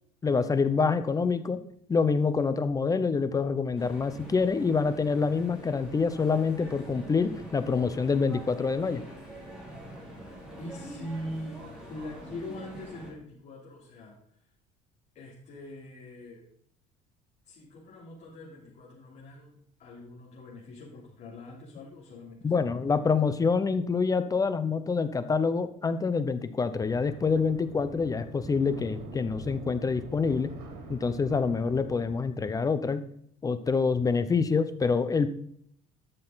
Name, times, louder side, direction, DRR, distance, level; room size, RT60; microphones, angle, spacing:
voice 1, 0.2-1.6 1.9-9.0 22.4-30.5 30.9-33.0 33.4-35.3, left 5 dB, 20° left, 12 dB, 0.7 m, -26 dB
sound 1, 3.8-13.1, right 1 dB, 5° right, 4.1 m, -45 dB
voice 2, 10.6-11.6 11.9-14.5 15.1-16.4 17.4-23.2, left 1 dB, 50° left, -6 dB, 3.4 m, -43 dB
sound 2, 26.8-32.2, right 3 dB, 80° right, 3.0 m, -44 dB
12.5 x 6.6 x 4.0 m, 0.67 s
cardioid pair, 120°, 17 cm